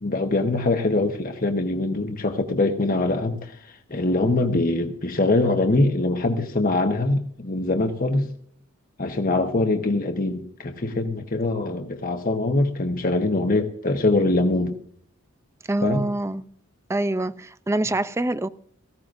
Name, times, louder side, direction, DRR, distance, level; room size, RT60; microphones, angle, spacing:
voice 1, 0.0-8.3 9.0-14.8 15.8-16.0, left 2 dB, 40° left, 1.0 m, -23 dB
voice 2, 15.7-16.5 16.9-18.5, right 2 dB, 15° right, 0.4 m, -25 dB
18.5 x 15.5 x 2.6 m
head